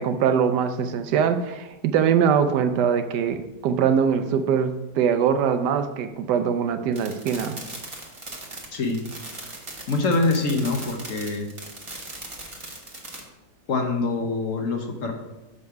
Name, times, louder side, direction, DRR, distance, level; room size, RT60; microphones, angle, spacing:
voice 1, 0.0-7.6, right 7 dB, 85° right, 8 dB, 1.2 m, -22 dB
sound 1, 6.9-13.2, right 2 dB, 20° right, 1.1 m, -39 dB
voice 2, 9.9-11.5 13.7-15.1, left 3 dB, 55° left, 3 dB, 1.1 m, -24 dB
6.8 x 5.3 x 4.6 m, 1.0 s
omnidirectional pair, 1.8 m